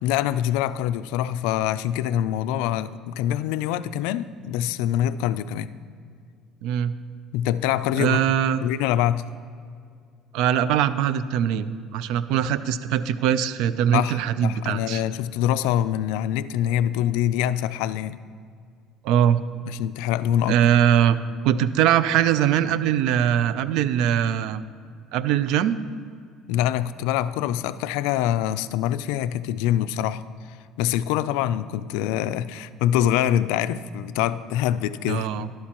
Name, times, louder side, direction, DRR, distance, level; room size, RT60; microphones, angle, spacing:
voice 1, 0.0-5.7 7.3-8.2 8.6-9.2 13.9-18.2 19.7-20.6 26.5-30.2 30.5-35.3, left 11 dB, 90° left, 14 dB, 0.3 m, -25 dB
voice 2, 6.6-6.9 8.0-8.6 10.3-15.0 19.0-19.4 20.5-21.2 21.4-24.6 25.1-25.8 35.1-35.5, right 10 dB, 75° right, 14 dB, 0.4 m, -21 dB
13.0 x 11.5 x 3.0 m, 2.2 s
cardioid pair, 125°, 0 cm